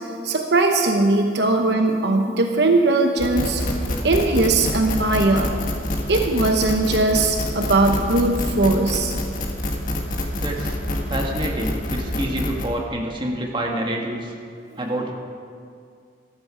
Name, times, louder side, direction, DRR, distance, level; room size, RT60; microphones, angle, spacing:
voice 1, 0.2-3.6 4.0-5.5 6.1-9.1 14.7-14.8, right 2 dB, 65° right, 3 dB, 0.9 m, -19 dB
sound 1, 3.2-12.7, left 1 dB, 50° left, 1.6 m, -26 dB
voice 2, 10.3-10.8 11.1-14.3 14.8-15.1, right 1 dB, 25° right, 0 dB, 1.6 m, -27 dB
13.5 x 13.5 x 5.0 m, 2.2 s
head